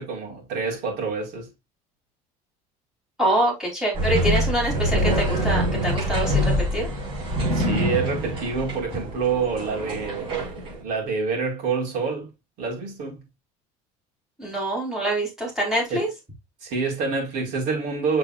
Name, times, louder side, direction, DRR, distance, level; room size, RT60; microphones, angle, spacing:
voice 1, 0.0-1.5 7.5-12.3 12.6-13.2 15.9-16.1 16.6-18.2, right 4 dB, 60° right, 5.1 m, -27 dB
voice 2, 3.2-6.9 14.4-16.1, right 1 dB, 5° right, 4.3 m, -25 dB
sound 1, 3.9-10.7, equal, 35° right, 5.5 m, -25 dB
7.6 x 6.8 x 2.5 m
cardioid pair, 170°, 15 cm